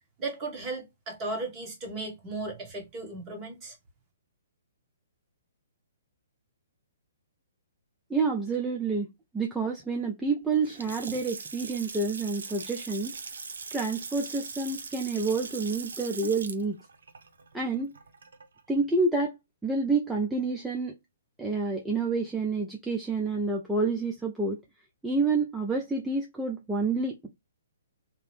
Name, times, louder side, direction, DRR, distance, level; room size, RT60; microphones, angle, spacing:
voice 1, 0.2-3.8, right 2 dB, 20° right, 1.2 m, -36 dB
voice 2, 8.1-9.1 9.3-13.1 13.7-16.8 17.5-17.9 18.7-19.4 19.6-20.9 21.4-24.6 25.0-27.3, right 3 dB, 5° right, 0.4 m, -28 dB
Water tap faucet / Sink (filling or washing) / Splash splatter, 10.5-18.6, right 4 dB, 85° right, 0.6 m, -41 dB
2.7 x 2.0 x 3.1 m
hypercardioid pair, 155°, 0 cm